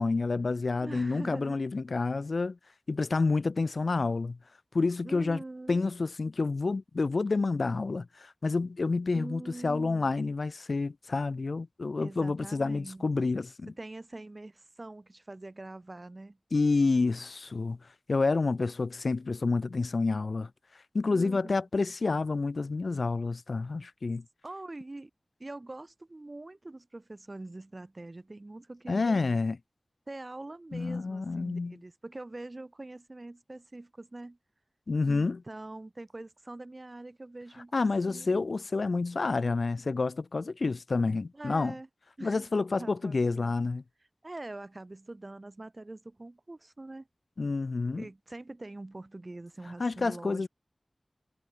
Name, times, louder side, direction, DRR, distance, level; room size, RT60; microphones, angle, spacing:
voice 1, 0.0-2.6 2.9-4.4 4.7-5.4 5.7-13.7 16.5-17.8 18.1-20.5 20.9-24.2 28.9-29.6 30.7-31.8 34.9-35.4 37.7-41.7 42.2-43.8 47.4-48.1 49.8-50.5, left 3 dB, 80° left, 0.4 m, -29 dB
voice 2, 0.8-1.6 5.0-5.8 9.1-10.1 12.0-13.0 13.7-16.4 21.1-21.5 24.4-25.1 25.4-29.2 30.1-34.4 35.0-38.4 41.3-41.9 42.2-42.5 42.8-43.6 44.2-47.1 48.0-50.5, right 2 dB, 45° right, 3.2 m, -44 dB
wide cardioid pair, 40°, 0 cm